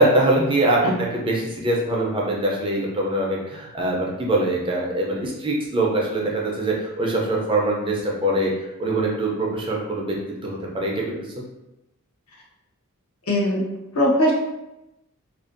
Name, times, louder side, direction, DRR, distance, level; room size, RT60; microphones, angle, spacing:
voice 1, 0.0-8.5 8.8-10.2 10.4-11.4, right 1 dB, 25° right, -2 dB, 0.4 m, -23 dB
voice 2, 13.3-13.7 13.9-14.3, equal, 80° left, -3 dB, 0.7 m, -20 dB
2.5 x 2.2 x 2.5 m, 0.91 s
head